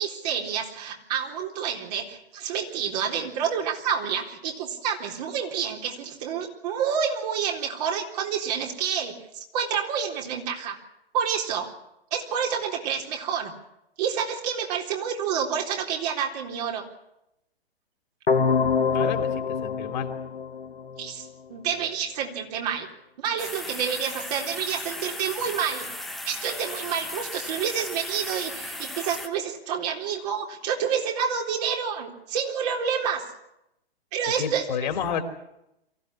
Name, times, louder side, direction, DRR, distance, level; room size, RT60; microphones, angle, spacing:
voice 1, 0.0-9.2 9.5-10.8 11.1-11.8 12.1-13.5 14.0-16.9 21.0-22.9 23.2-25.9 26.3-33.2 34.1-34.7, right 7 dB, 40° right, 2 dB, 3.9 m, -28 dB
sound 1, 18.3-21.2, left 5 dB, 70° left, 1.5 m, -25 dB
voice 2, 18.9-20.1 34.3-35.2, left 8 dB, 50° left, 7 dB, 3.1 m, -30 dB
sound 2, 23.4-29.3, left 1 dB, ahead, 1.5 m, -36 dB
24.0 x 15.5 x 10.0 m, 0.85 s
figure-of-eight pair, 115°, 31 cm